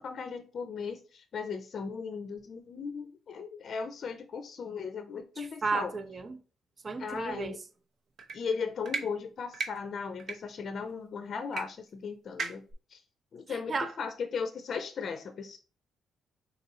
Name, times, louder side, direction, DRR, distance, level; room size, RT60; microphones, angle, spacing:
voice 1, 0.0-5.9 7.0-7.6 8.3-12.6 12.9-13.0 13.3-15.6, left 5 dB, 55° left, 0.5 m, -37 dB
voice 2, 5.4-6.4 6.8-7.5 13.5-13.9, right 4 dB, 35° right, 0.6 m, -33 dB
sound 1, 8.2-8.4 8.8-9.0 9.5-9.7 10.2-10.4 11.5-11.6 11.9-12.0 12.4-12.7, right 4 dB, 65° right, 0.9 m, -34 dB
4.0 x 2.7 x 3.9 m
cardioid pair, 90°, 0 cm